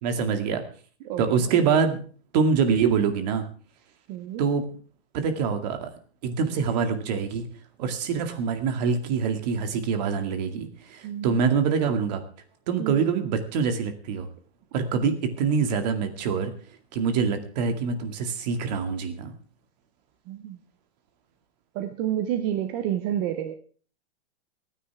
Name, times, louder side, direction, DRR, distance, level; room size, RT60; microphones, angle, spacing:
voice 1, 0.0-0.6 1.2-2.0 2.3-3.4 4.4-4.6 5.1-5.9 6.2-7.5 7.8-12.2 12.7-14.3 14.7-16.5 16.9-19.3, right 6 dB, 40° right, 7 dB, 2.1 m, -25 dB
voice 2, 4.1-4.4 11.0-11.3 12.8-13.0 20.3-20.6 21.8-23.5, right 10 dB, 20° right, 8 dB, 0.6 m, -29 dB
27.0 x 9.9 x 3.4 m, 0.42 s
supercardioid pair, 170°, 33 cm